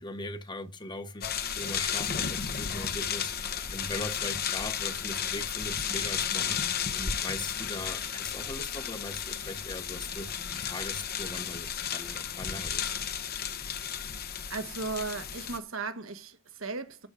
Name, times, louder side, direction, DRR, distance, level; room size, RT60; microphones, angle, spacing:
voice 1, 0.0-12.9, left 2 dB, 20° left, 1.2 m, -40 dB
sound 1, 1.2-15.6, left 8 dB, 50° left, 1.1 m, -33 dB
voice 2, 14.5-17.1, right 4 dB, 75° right, 1.5 m, -36 dB
13.5 x 5.4 x 4.9 m
head